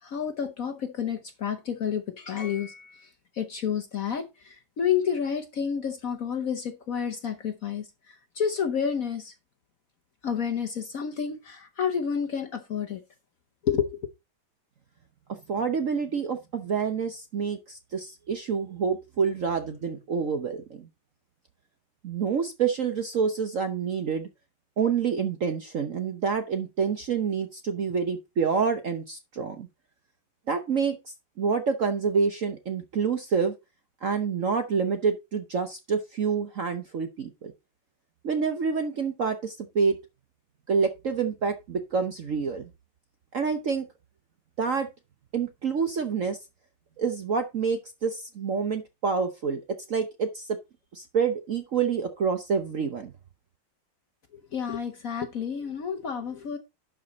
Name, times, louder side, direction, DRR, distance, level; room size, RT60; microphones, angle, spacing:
voice 1, 0.0-9.3 10.2-13.0 13.6-14.0 54.5-56.6, left 7 dB, 55° left, 1.1 m, -30 dB
voice 2, 15.5-20.9 22.0-24.3 24.8-29.7 30.5-31.0 31.4-33.5 34.0-37.5 38.2-40.0 40.7-42.7 43.3-43.9 44.6-44.9 45.3-46.4 47.0-49.6 49.9-50.6 50.9-53.1, right 5 dB, 55° right, 0.9 m, -27 dB
11.5 x 5.2 x 4.0 m
omnidirectional pair, 2.3 m